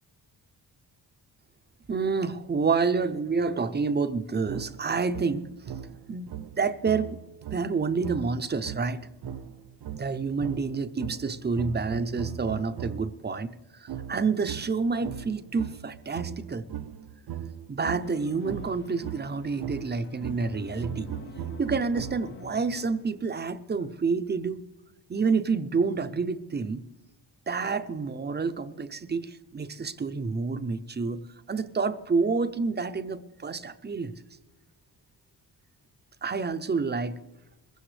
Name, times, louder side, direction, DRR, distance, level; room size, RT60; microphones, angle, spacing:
voice 1, 1.9-5.7 6.1-7.2 7.5-9.0 9.9-16.6 17.7-21.1 21.6-24.7 25.1-26.8 27.5-31.2 31.5-34.1 36.2-37.2, right 4 dB, 25° right, 12 dB, 0.5 m, -28 dB
sound 1, 4.5-13.2 13.9-22.5, right 10 dB, 65° right, 0.7 m, -39 dB
sound 2, 18.0-23.6, left 6 dB, 30° left, 0.4 m, -48 dB
21.5 x 15.5 x 3.3 m, 1.1 s
wide cardioid pair, 155°, 42 cm